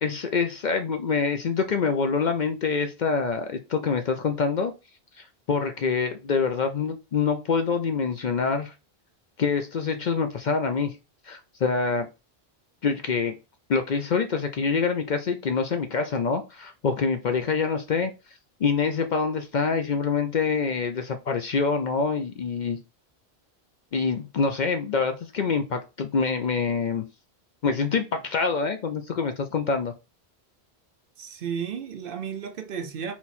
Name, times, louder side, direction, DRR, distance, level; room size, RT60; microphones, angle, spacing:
voice 1, 0.0-4.7 5.2-8.7 9.4-10.9 11.3-12.1 12.8-13.3 13.7-18.1 18.6-22.8 23.9-27.0 27.6-29.9, left 5 dB, 55° left, 0.6 m, -26 dB
voice 2, 31.2-33.2, right 7 dB, 60° right, 0.8 m, -33 dB
4.0 x 2.9 x 4.1 m
omnidirectional pair, 1.1 m